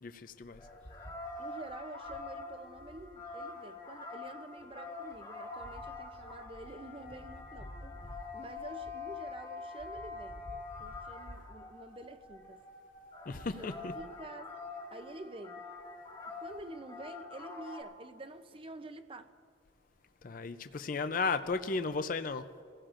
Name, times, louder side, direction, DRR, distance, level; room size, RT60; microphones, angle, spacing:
voice 1, 0.0-0.6 13.3-13.9 20.2-22.4, left 4 dB, 45° left, 0.5 m, -34 dB
sound 1, 0.6-17.8, left 3 dB, 30° left, 1.7 m, -45 dB
voice 2, 1.4-7.7 8.3-10.5 10.8-12.6 13.6-14.6 14.9-15.6 16.4-19.3, right 2 dB, 25° right, 0.6 m, -48 dB
28.5 x 16.5 x 2.5 m
head